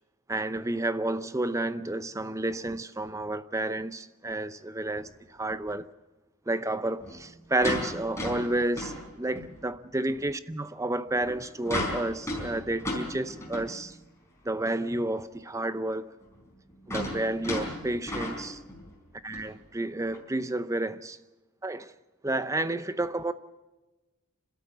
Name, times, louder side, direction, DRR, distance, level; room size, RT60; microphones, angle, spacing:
voice 1, 0.3-5.9 6.5-14.0 14.4-16.1 16.9-18.6 19.2-21.2 21.6-21.9 22.2-23.3, right 2 dB, 15° right, 0.6 m, -31 dB
sound 1, 5.0-5.1 7.0-9.6 10.1-10.2 11.1-13.9 14.5-14.6 14.8-14.9 16.2-19.0 19.3-19.5 20.1-20.2, left 1 dB, 15° left, 4.6 m, -35 dB
27.5 x 13.0 x 8.0 m
head